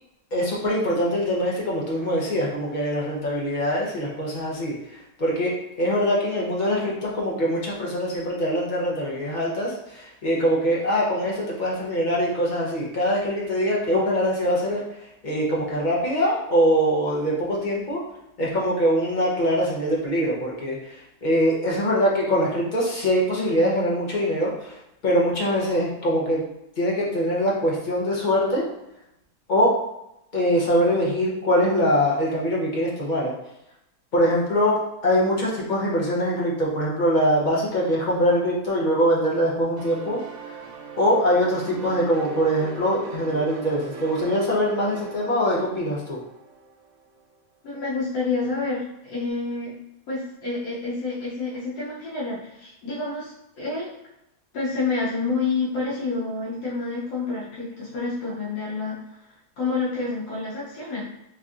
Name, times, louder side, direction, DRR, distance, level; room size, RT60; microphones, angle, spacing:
voice 1, 0.3-18.0 18.4-26.4 26.8-28.7 29.5-29.8 30.3-33.3 34.1-40.6 41.0-46.2, equal, 45° left, -5 dB, 0.6 m, -23 dB
sound 1, 39.8-47.2, right 3 dB, 70° right, 0.7 m, -40 dB
voice 2, 47.6-49.8 50.1-53.9 54.5-59.0 59.6-61.0, left 3 dB, 85° left, -7 dB, 1.3 m, -28 dB
3.3 x 2.6 x 2.4 m, 0.86 s
omnidirectional pair, 1.6 m